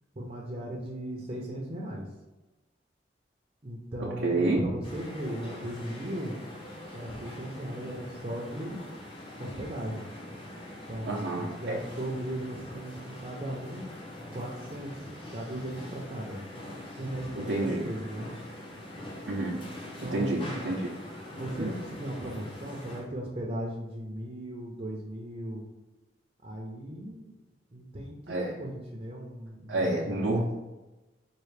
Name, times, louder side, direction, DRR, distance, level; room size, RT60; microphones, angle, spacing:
voice 1, 0.2-2.1 3.6-6.4 6.9-8.8 9.4-10.1 10.9-13.8 14.3-16.4 16.9-18.3 20.0-20.7 21.3-25.6 26.4-27.3 27.7-30.5, right 1 dB, 35° right, -3 dB, 0.6 m, -37 dB
voice 2, 4.2-4.6 11.1-11.8 17.5-17.8 19.3-19.6 20.1-20.8 21.6-21.7 28.3-28.6 29.7-30.5, right 2 dB, 75° right, -3 dB, 0.6 m, -28 dB
sound 1, 4.8-23.1, left 1 dB, 30° left, 0.8 m, -43 dB
4.7 x 2.4 x 3.3 m, 1.1 s
head